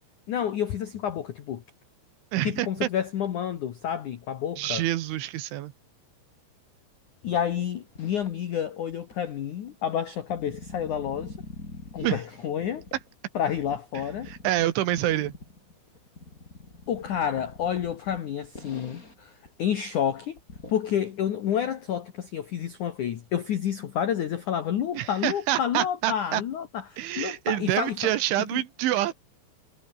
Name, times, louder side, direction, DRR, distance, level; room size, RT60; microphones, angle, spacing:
voice 1, 0.3-1.6 2.4-4.8 7.2-11.4 11.9-12.9 13.3-14.3 16.9-20.4 20.7-28.0 28.5-28.6, left 9 dB, 75° left, 1.8 m, -29 dB
voice 2, 2.3-2.9 4.6-5.7 12.0-12.2 14.3-15.3 24.9-26.4 27.0-29.1, right 14 dB, 75° right, 3.6 m, -27 dB
sound 1, 7.6-8.6 8.9-13.1 13.5-19.2 19.5-19.6 19.9-20.0 20.4-20.7, left 2 dB, 15° left, 5.0 m, -45 dB
omnidirectional pair, 5.9 m